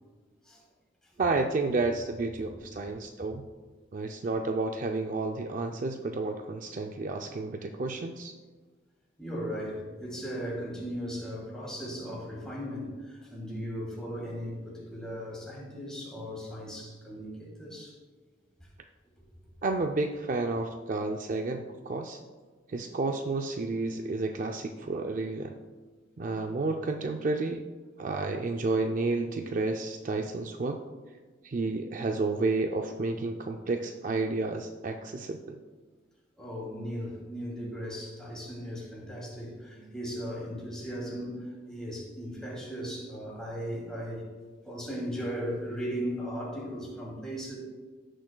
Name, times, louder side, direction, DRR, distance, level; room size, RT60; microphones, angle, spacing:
voice 1, 1.2-3.5 3.9-8.3 19.6-22.2 22.7-25.6 26.2-27.6 28.0-30.8 31.4-35.6, right 3 dB, 45° right, 5 dB, 0.4 m, -31 dB
voice 2, 9.2-18.0 36.4-44.2 44.6-47.5, equal, 5° left, -4 dB, 2.5 m, -37 dB
16.0 x 6.3 x 2.2 m, 1.4 s
head